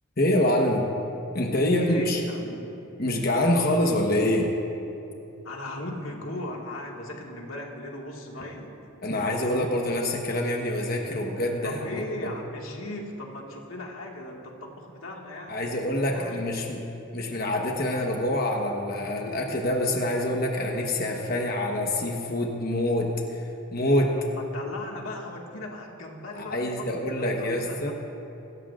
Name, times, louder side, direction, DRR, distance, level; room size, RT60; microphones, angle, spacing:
voice 1, 0.2-0.9 1.3-2.2 3.0-4.5 9.0-12.3 15.5-16.8 17.1-23.4 23.7-24.1 26.3-27.9, left 1 dB, 50° left, 0 dB, 1.1 m, -26 dB
voice 2, 1.7-2.7 5.4-8.7 11.6-15.7 15.9-16.7 24.4-27.9, left 1 dB, 90° left, 0 dB, 1.9 m, -38 dB
26.0 x 13.5 x 2.5 m, 2.9 s
head